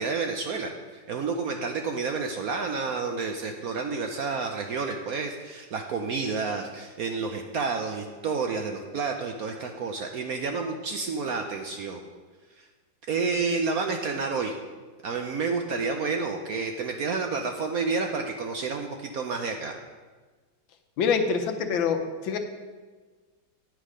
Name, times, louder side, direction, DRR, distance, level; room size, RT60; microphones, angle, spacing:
voice 1, 0.0-12.0 12.6-12.7 13.1-14.6 15.0-19.7, right 4 dB, 65° right, 4 dB, 0.9 m, -30 dB
voice 2, 21.0-22.4, left 5 dB, 80° left, 5 dB, 1.6 m, -25 dB
9.6 x 6.4 x 5.0 m, 1.4 s
omnidirectional pair, 2.1 m